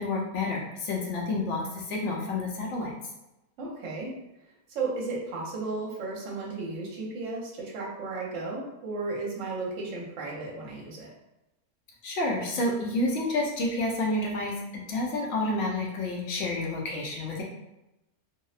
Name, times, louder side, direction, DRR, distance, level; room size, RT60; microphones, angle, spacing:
voice 1, 0.0-2.9 12.0-14.5 14.9-17.4, left 2 dB, 65° left, -2 dB, 0.8 m, -29 dB
voice 2, 3.6-4.1 4.7-11.1, right 3 dB, 65° right, -3 dB, 1.0 m, -34 dB
2.7 x 2.0 x 2.4 m, 0.93 s
omnidirectional pair, 1.6 m